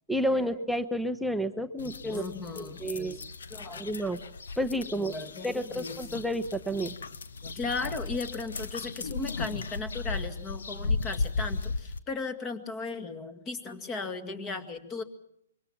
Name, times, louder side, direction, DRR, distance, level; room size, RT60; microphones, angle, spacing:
voice 1, 0.1-2.2 2.6-3.2 3.8-4.2 4.6-5.1 5.4-6.9, equal, ahead, 11 dB, 0.8 m, -30 dB
sound 1, 1.8-12.0, left 4 dB, 65° left, 1.2 m, -36 dB
voice 2, 1.8-3.2 3.5-3.9 4.9-6.2 7.4-15.0, left 3 dB, 20° left, 9 dB, 2.0 m, -37 dB
25.5 x 23.0 x 6.0 m, 0.75 s
figure-of-eight pair, 125°, 0 cm